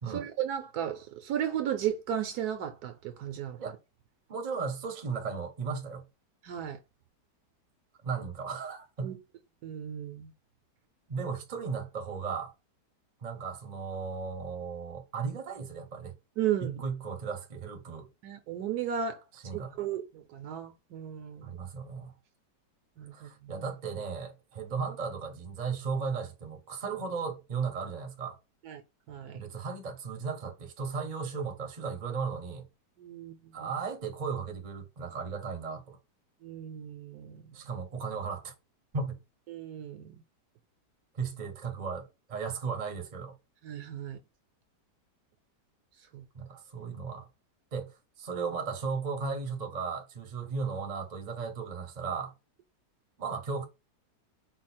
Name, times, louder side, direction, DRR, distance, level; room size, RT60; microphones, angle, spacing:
voice 1, 0.1-3.6 6.4-6.8 9.0-9.2 9.6-10.3 16.4-16.8 18.2-19.2 19.5-21.6 23.0-23.6 28.6-28.8 29.1-29.4 33.0-33.7 36.4-37.4 39.5-40.1 43.6-44.2 46.1-46.3, right 9 dB, 70° right, 1.1 m, -35 dB
voice 2, 4.3-6.0 8.0-9.1 11.1-12.5 13.2-16.1 16.6-18.1 19.3-19.8 21.4-22.1 23.1-28.4 29.3-32.7 33.5-36.0 37.5-38.5 38.9-39.2 41.1-43.3 46.3-47.3 47.7-52.3 53.2-53.6, right 5 dB, 35° right, 0.7 m, -36 dB
4.8 x 2.0 x 4.2 m
omnidirectional pair, 1.9 m